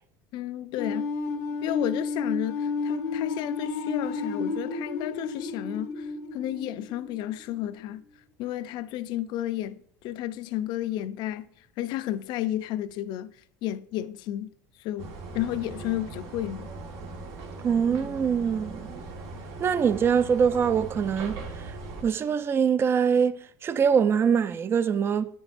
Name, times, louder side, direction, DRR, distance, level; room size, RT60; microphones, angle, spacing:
voice 1, 0.3-1.1 1.6-8.0 8.4-11.5 11.8-13.3 13.6-14.5 14.8-16.7, left 13 dB, 55° left, 0.4 m, -32 dB
sound 1, 0.8-7.6, left 4 dB, 90° left, 0.7 m, -32 dB
sound 2, 15.0-22.0, right 3 dB, 75° right, 1.5 m, -39 dB
voice 2, 17.6-19.0 19.6-21.4 22.0-25.3, right 7 dB, 25° right, 0.4 m, -23 dB
9.6 x 5.2 x 2.5 m
supercardioid pair, 125°, 9 cm